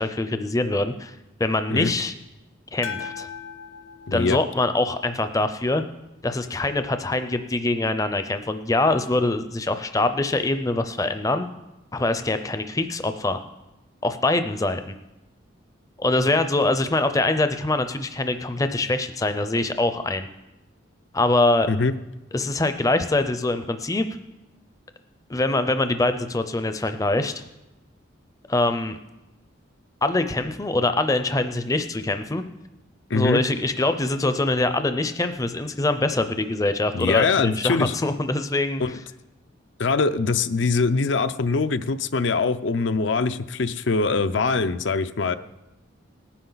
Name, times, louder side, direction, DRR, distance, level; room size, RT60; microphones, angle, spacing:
voice 1, 0.0-2.1 2.7-3.3 4.1-5.8 6.2-11.5 11.9-13.4 14.0-14.9 16.0-20.3 21.1-21.7 22.3-24.1 25.3-27.3 28.5-29.0 30.0-32.4 33.1-38.8, left 2 dB, 15° left, 9 dB, 0.5 m, -24 dB
sound 1, 2.8-5.2, left 6 dB, 90° left, 1.3 m, -38 dB
voice 2, 4.1-4.4 21.7-21.9 33.1-33.4 36.9-37.9 38.8-39.0 39.8-45.3, left 4 dB, 70° left, 12 dB, 0.6 m, -23 dB
19.0 x 10.0 x 4.0 m, 1.0 s
head